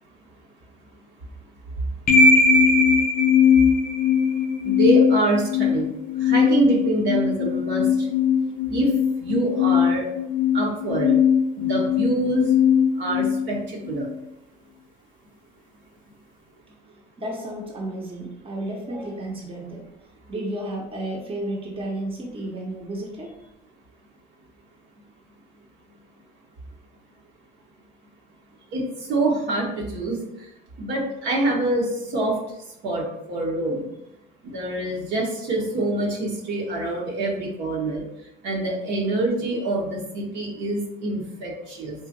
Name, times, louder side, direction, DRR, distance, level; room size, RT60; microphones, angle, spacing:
sound 1, 2.1-14.1, left 6 dB, 40° left, 0.5 m, -20 dB
voice 1, 4.6-5.9 6.2-7.9 8.7-8.9 9.2-10.1 10.5-11.2 11.6-12.5 13.0-14.1 28.7-28.8 29.1-30.2 30.8-32.3 32.8-33.9 34.4-38.0 38.4-41.9, right 2 dB, 60° right, -3 dB, 1.1 m, -25 dB
voice 2, 17.2-19.8 20.3-23.3, right 1 dB, 25° right, -2 dB, 0.9 m, -32 dB
3.8 x 2.4 x 2.6 m, 0.83 s
supercardioid pair, 80°, 21 cm